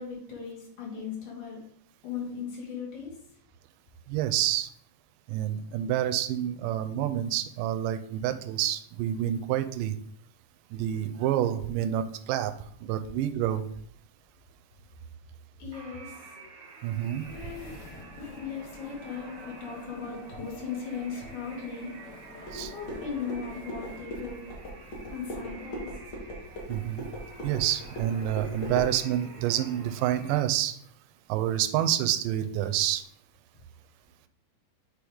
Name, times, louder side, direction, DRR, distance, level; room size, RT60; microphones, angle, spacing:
voice 1, 0.0-1.6 2.0-3.2 15.6-16.3 17.3-17.7 18.2-21.9 22.5-24.4 25.1-25.9, left 6 dB, 65° left, -3 dB, 3.4 m, -38 dB
voice 2, 4.1-4.7 5.3-10.0 10.7-13.6 16.8-17.3 22.5-22.7 26.7-27.1 27.4-30.7 31.3-33.0, right 11 dB, 85° right, 10 dB, 2.2 m, -28 dB
sound 1, 15.7-30.4, right 4 dB, 60° right, 1.2 m, -49 dB
sound 2, 17.2-24.1, left 2 dB, 85° left, 2.9 m, -48 dB
sound 3, 22.4-28.9, equal, 45° left, 1.7 m, -39 dB
7.9 x 3.3 x 5.0 m, 0.63 s
omnidirectional pair, 3.8 m